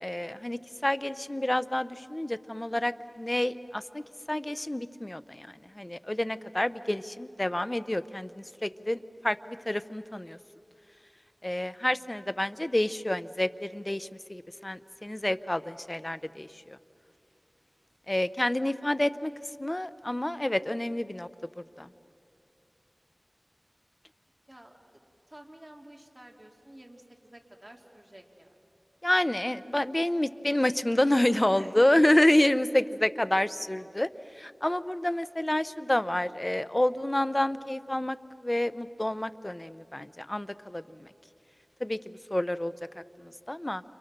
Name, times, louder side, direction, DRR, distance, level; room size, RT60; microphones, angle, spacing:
voice 1, 0.0-4.0 4.3-5.5 5.7-10.4 11.4-16.8 18.1-19.3 19.6-21.3 21.8-21.9 29.0-34.1 34.4-38.2 38.4-41.1 41.8-42.0 42.3-42.7 43.2-43.8, left 1 dB, 30° left, 13 dB, 0.8 m, -28 dB
voice 2, 24.5-25.0 25.3-28.6 31.5-32.2, right 1 dB, 30° right, 2 dB, 2.6 m, -50 dB
29.5 x 27.0 x 6.8 m, 2.6 s
wide cardioid pair, 40°, 0 cm